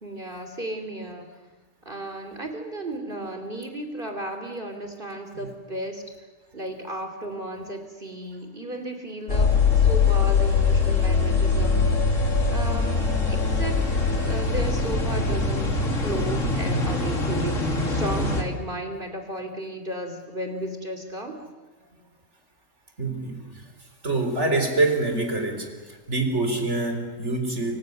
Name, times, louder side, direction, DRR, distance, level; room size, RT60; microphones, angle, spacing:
voice 1, 0.0-1.3 1.8-6.0 6.5-11.9 12.5-21.4, right 1 dB, 40° right, 5 dB, 3.3 m, -34 dB
sound 1, 9.3-18.4, left 4 dB, 75° left, 3.2 m, -22 dB
voice 2, 23.0-23.6 24.0-25.7 26.1-27.8, right 2 dB, 60° right, 5 dB, 4.5 m, -25 dB
28.5 x 26.0 x 6.7 m, 1.3 s
omnidirectional pair, 1.3 m